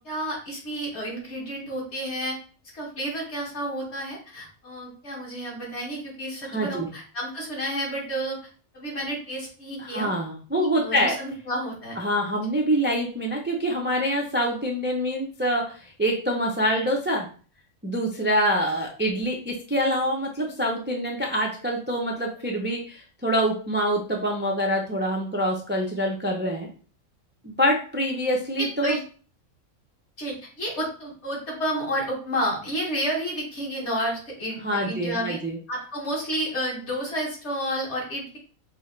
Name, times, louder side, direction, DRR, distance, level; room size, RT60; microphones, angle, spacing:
voice 1, 0.0-2.4 2.7-8.4 8.7-10.1 10.6-12.0 28.6-29.0 30.2-35.4 35.7-38.4, equal, 50° left, -2 dB, 1.8 m, -30 dB
voice 2, 6.5-6.9 9.8-11.2 12.0-17.3 17.8-26.7 27.4-28.9 34.6-35.6, equal, 15° right, 0 dB, 0.4 m, -25 dB
5.4 x 2.7 x 3.2 m, 0.39 s
omnidirectional pair, 1.5 m